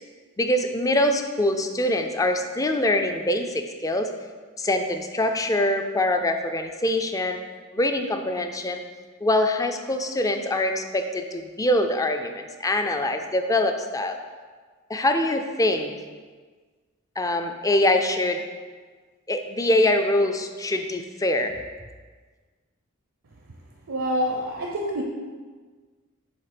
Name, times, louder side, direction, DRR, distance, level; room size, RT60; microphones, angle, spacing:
voice 1, 0.4-4.1 4.6-7.4 7.7-8.8 9.2-14.2 14.9-15.9 17.2-18.4 19.3-21.6, left 1 dB, 15° left, 6 dB, 0.4 m, -24 dB
voice 2, 23.9-25.0, equal, 65° right, 0 dB, 0.6 m, -26 dB
7.1 x 3.9 x 5.0 m, 1.5 s
head